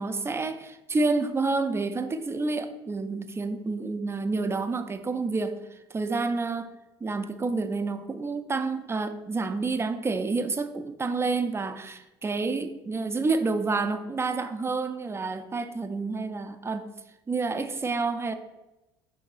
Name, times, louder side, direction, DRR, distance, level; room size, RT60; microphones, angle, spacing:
voice 1, 0.0-5.6 5.9-6.7 7.0-16.9 17.3-18.3, right 3 dB, 20° right, 0.5 m, -29 dB
4.6 x 2.7 x 3.9 m
hypercardioid pair, 60°, 13 cm